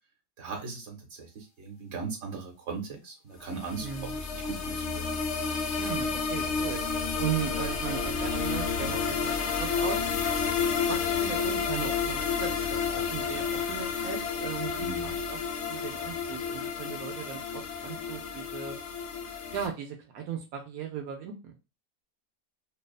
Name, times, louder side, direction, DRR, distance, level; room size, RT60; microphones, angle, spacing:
voice 1, 0.4-5.2 14.8-15.2, right 4 dB, 55° right, 1 dB, 1.1 m, -39 dB
sound 1, 3.5-19.7, left 5 dB, 65° left, 0.7 m, -31 dB
voice 2, 3.8-4.2 5.8-6.8 7.2-10.0 10.5-15.4 15.7-18.8 19.5-21.6, right 8 dB, 80° right, 2 dB, 1.0 m, -37 dB
2.6 x 2.3 x 2.3 m, 0.27 s
omnidirectional pair, 1.5 m